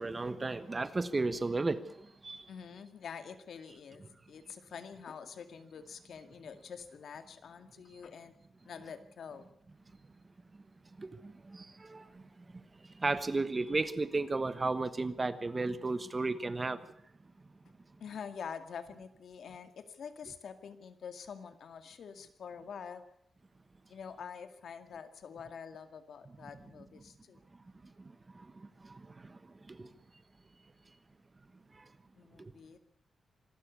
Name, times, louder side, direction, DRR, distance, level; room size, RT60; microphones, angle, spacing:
voice 1, 0.0-2.5 11.0-12.6 12.9-16.8 28.0-29.4 29.7-29.9 31.7-31.8 32.4-32.5, right 3 dB, 25° right, 1.2 m, -35 dB
voice 2, 2.5-8.3 8.7-9.5 18.0-23.0 23.9-27.4 32.2-32.8, left 6 dB, 70° left, 2.1 m, -46 dB
25.5 x 12.5 x 8.3 m
wide cardioid pair, 120°, 0 cm